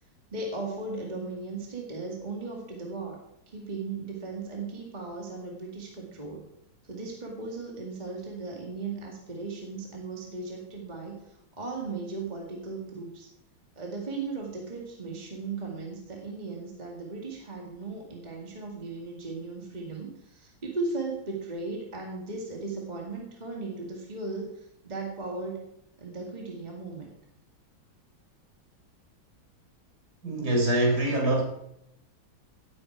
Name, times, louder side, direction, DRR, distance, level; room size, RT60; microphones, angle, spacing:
voice 1, 0.3-3.2 3.5-6.5 6.9-13.3 13.8-25.6 26.0-27.1, right 3 dB, 20° right, -1 dB, 2.1 m, -37 dB
voice 2, 30.2-31.4, right 1 dB, 50° right, -1 dB, 4.5 m, -24 dB
17.0 x 8.6 x 4.5 m, 0.79 s
omnidirectional pair, 2.2 m